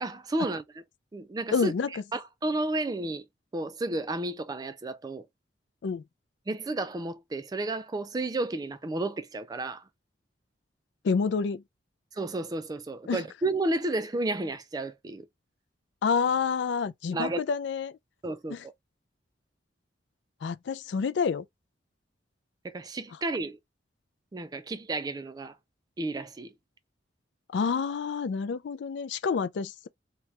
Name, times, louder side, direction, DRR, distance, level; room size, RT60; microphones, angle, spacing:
voice 1, 0.0-0.8 1.1-3.2 3.5-5.3 6.5-9.9 12.1-15.3 17.1-17.4 18.2-18.7 22.6-23.6 24.3-25.6 26.0-26.5, right 2 dB, 20° right, 0.3 m, -32 dB
voice 2, 1.5-1.9 5.8-6.0 11.0-11.6 13.1-13.2 16.0-18.0 18.5-18.6 20.4-21.4 27.5-29.9, left 5 dB, 70° left, 0.3 m, -28 dB
2.8 x 2.3 x 3.2 m
head